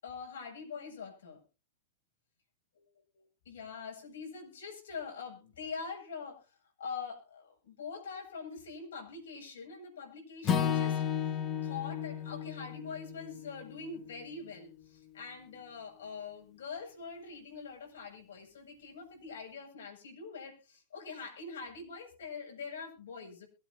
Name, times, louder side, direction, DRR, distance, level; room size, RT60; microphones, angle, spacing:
voice 1, 0.0-1.4 2.8-2.9 3.1-11.2 11.6-23.5, left 5 dB, 80° left, 1 dB, 7.9 m, -44 dB
Acoustic guitar / Strum, 10.4-14.7, left 8 dB, 30° left, 1.1 m, -34 dB
23.0 x 9.5 x 2.9 m, 0.33 s
hypercardioid pair, 120°, 0 cm